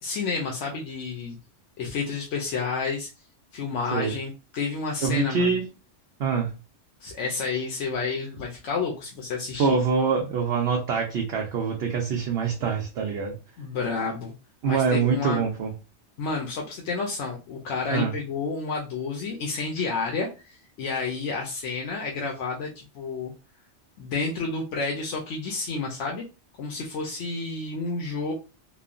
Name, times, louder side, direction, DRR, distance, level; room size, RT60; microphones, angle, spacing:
voice 1, 0.0-1.4 1.8-3.1 3.5-5.6 7.0-9.8 13.6-14.3 14.6-15.4 16.2-23.3 24.0-26.2 26.6-28.3, left 4 dB, 85° left, 0.9 m, -30 dB
voice 2, 5.0-5.7 6.2-6.5 9.6-13.4 14.6-15.7 17.9-18.1, right 5 dB, 65° right, 0.8 m, -24 dB
3.0 x 2.1 x 2.4 m
omnidirectional pair, 1.2 m